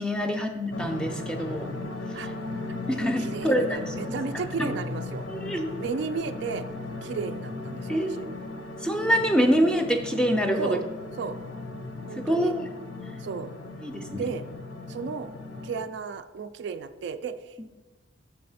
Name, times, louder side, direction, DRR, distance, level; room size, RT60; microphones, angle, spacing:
voice 1, 0.0-1.7 2.9-4.2 4.6-4.7 5.3-5.7 7.9-8.1 8.8-10.8 12.2-12.7 13.8-14.2, equal, 5° left, 5 dB, 0.5 m, -25 dB
sound 1, 0.7-15.8, left 2 dB, 70° left, 0.8 m, -37 dB
voice 2, 2.7-5.2 5.8-6.7 7.0-8.3 10.6-10.8 11.2-11.4 12.1-12.5 13.2-13.5 14.2-14.4 14.9-15.3 15.6-17.6, right 5 dB, 60° right, 10 dB, 0.3 m, -34 dB
6.7 x 4.2 x 5.5 m, 1.2 s
head